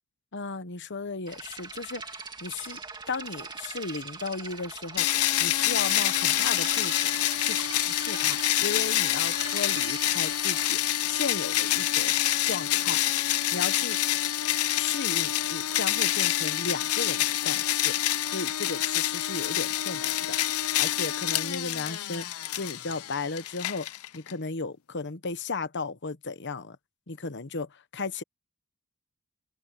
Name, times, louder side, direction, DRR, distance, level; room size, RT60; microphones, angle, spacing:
voice 1, 0.3-2.8 3.1-7.1 7.4-12.1 12.4-13.0 13.5-14.0 14.8-18.0 18.2-23.9 24.1-26.8 27.1-28.2, left 4 dB, 55° left, 1.1 m, -35 dB
sound 1, 1.3-10.7, right 4 dB, 20° right, 2.5 m, -41 dB
sound 2, 2.6-12.7, right 8 dB, 40° right, 2.5 m, -53 dB
sound 3, 5.0-24.3, left 13 dB, 85° left, 0.6 m, -27 dB
open air
head